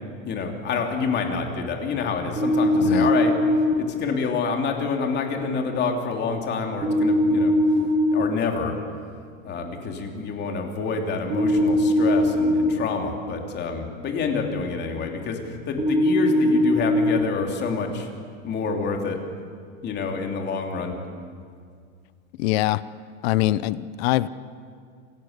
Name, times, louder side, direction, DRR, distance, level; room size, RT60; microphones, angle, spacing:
voice 1, 0.2-3.4 3.7-7.5 8.1-8.8 9.4-18.1 18.4-19.2 19.8-21.0, left 5 dB, 30° left, 3 dB, 3.3 m, -27 dB
sound 1, 2.4-3.7 6.8-8.2 11.3-12.7 15.8-17.2, left 1 dB, 15° right, 5.9 m, -20 dB
voice 2, 2.8-3.1 22.4-22.8 23.2-24.3, left 16 dB, 55° left, 17 dB, 0.8 m, -23 dB
27.5 x 18.0 x 8.2 m, 2.1 s
supercardioid pair, 150°, 37 cm